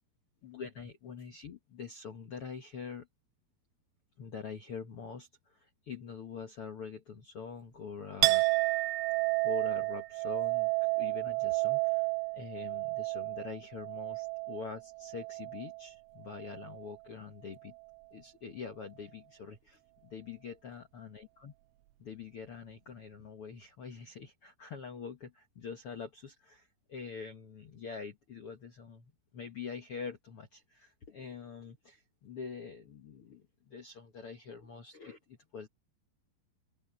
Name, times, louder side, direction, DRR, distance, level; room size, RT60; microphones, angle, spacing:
voice 1, 0.4-3.1 4.2-8.9 9.4-17.7 18.1-21.5 22.0-35.7, left 6 dB, 70° left, 1.3 m, -45 dB
Chink clink, 8.2-15.9 16.2-16.9, right 26 dB, 90° right, 2.7 m, -31 dB
open air
omnidirectional pair, 4.7 m